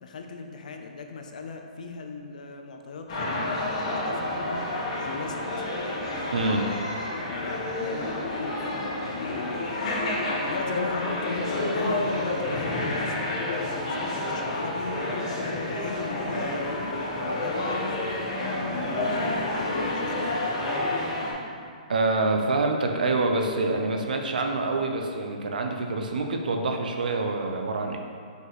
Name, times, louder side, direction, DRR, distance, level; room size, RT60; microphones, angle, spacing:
voice 1, 0.0-4.6 4.9-5.6 7.3-9.7 10.2-20.4, left 4 dB, 65° left, 4 dB, 0.6 m, -38 dB
sound 1, 3.1-21.3, left 1 dB, 40° left, 1.3 m, -29 dB
voice 2, 6.3-6.7 21.9-28.0, right 2 dB, 80° right, 3 dB, 0.7 m, -26 dB
6.0 x 5.3 x 3.2 m, 2.2 s
hypercardioid pair, 175°, 4 cm